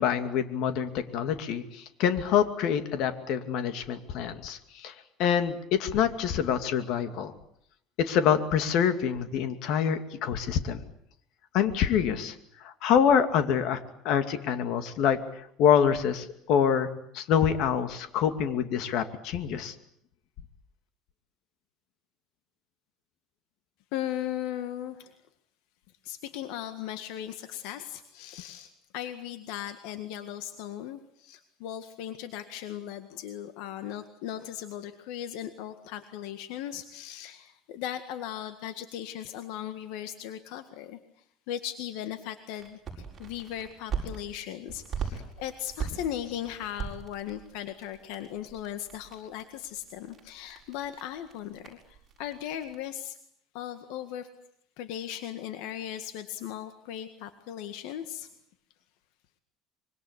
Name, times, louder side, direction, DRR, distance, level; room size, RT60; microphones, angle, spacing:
voice 1, 0.0-4.9 5.2-7.3 8.0-10.8 11.5-12.3 12.6-13.8 14.0-15.2 15.6-19.7, left 8 dB, 60° left, 9 dB, 2.5 m, -26 dB
voice 2, 23.9-25.1 26.0-41.0 41.5-53.2 53.5-54.3 54.8-58.3, left 11 dB, 75° left, 9 dB, 1.8 m, -38 dB
sound 1, 42.6-44.2 44.7-52.7, right 6 dB, 20° right, 7.3 m, -40 dB
25.5 x 24.0 x 8.3 m, 0.69 s
cardioid pair, 155°, 0 cm